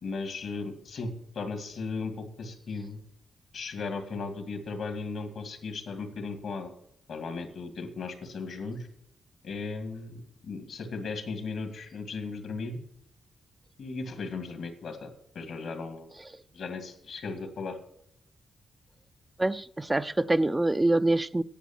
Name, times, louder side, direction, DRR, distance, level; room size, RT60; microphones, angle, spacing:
voice 1, 0.0-3.0 3.5-6.7 7.1-8.9 9.4-12.8 13.8-16.1 16.5-17.8, left 4 dB, 75° left, 7 dB, 2.3 m, -36 dB
voice 2, 19.4-21.4, right 2 dB, 20° right, 12 dB, 0.5 m, -25 dB
10.0 x 8.3 x 7.4 m, 0.73 s
cardioid pair, 55°, 0 cm